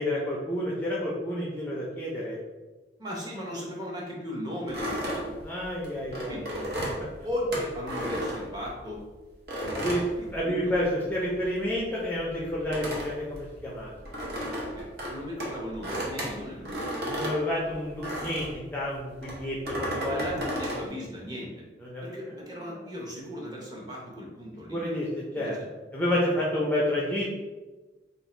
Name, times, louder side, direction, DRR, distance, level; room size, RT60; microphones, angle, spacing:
voice 1, 0.0-2.4 5.4-6.4 9.7-10.0 10.3-13.9 17.1-20.4 21.8-22.1 22.8-22.9 24.7-25.6 25.9-27.3, left 1 dB, 10° left, -5 dB, 0.4 m, -29 dB
voice 2, 3.0-5.3 6.3-6.7 7.2-9.0 9.5-10.7 14.8-16.9 19.7-21.6 22.0-24.8 25.3-25.5, left 1 dB, 20° right, -3 dB, 0.8 m, -37 dB
sound 1, 4.7-9.0 9.5-11.0 11.2-18.6 19.2-20.9, equal, 60° right, 0.9 m, -34 dB
2.7 x 2.4 x 4.2 m, 1.2 s
head